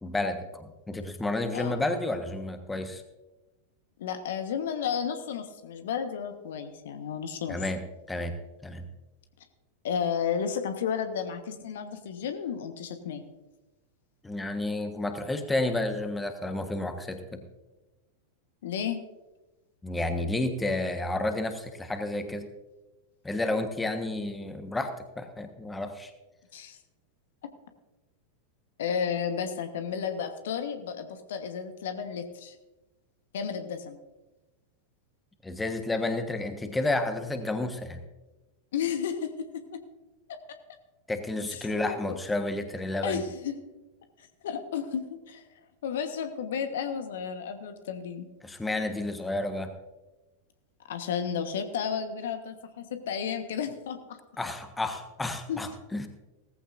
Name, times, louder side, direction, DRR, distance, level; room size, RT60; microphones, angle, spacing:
voice 1, 0.0-3.0 7.5-7.8 8.1-8.9 14.2-17.4 19.8-22.5 23.2-26.1 35.4-38.0 41.1-43.2 48.4-49.7 54.4-56.1, left 2 dB, 10° left, 7 dB, 1.3 m, -31 dB
voice 2, 1.5-1.8 4.0-7.6 9.8-13.2 18.6-19.1 26.5-26.8 27.4-27.5 28.8-32.6 33.3-34.0 38.7-39.8 41.5-42.2 43.0-43.6 44.2-45.4 45.8-48.3 50.9-54.2 55.5-55.6, left 7 dB, 60° left, 8 dB, 1.2 m, -32 dB
18.0 x 14.5 x 2.6 m, 1.1 s
figure-of-eight pair, 90°, 0 cm